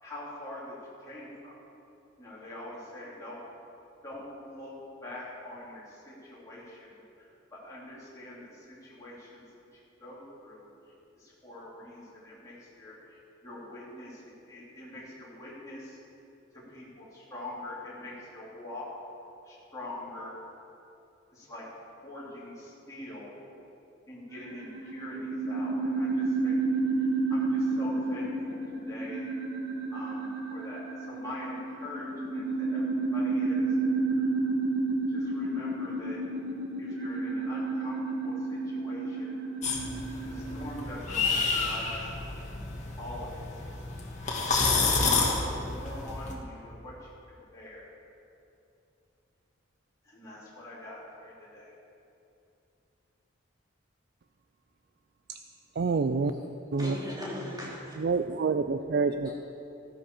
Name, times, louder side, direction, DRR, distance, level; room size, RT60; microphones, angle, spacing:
voice 1, 0.0-0.7 1.0-1.6 2.2-3.4 4.0-4.7 5.0-6.9 7.2-9.4 10.0-16.0 16.5-18.9 19.4-20.4 21.3-21.7 22.0-23.3 24.1-26.6 27.0-28.6 28.9-29.3 29.9-33.6 34.1-34.3 35.1-36.2 36.8-39.3 40.3-42.1 43.0-43.6 44.5-47.9 50.0-51.7, left 1 dB, 15° left, -9 dB, 3.9 m, -44 dB
sound 1, 24.3-40.7, right 3 dB, 75° right, 1.7 m, -31 dB
sound 2, 39.6-46.3, left 4 dB, 40° left, 2.0 m, -29 dB
voice 2, 55.8-56.3 56.7-56.9 58.0-59.3, right 4 dB, 55° right, 9 dB, 0.4 m, -27 dB
voice 3, 56.8-57.9 58.3-58.4 59.2-59.3, left 1 dB, 20° right, -6 dB, 3.2 m, -39 dB
15.0 x 12.5 x 5.1 m, 2.7 s
head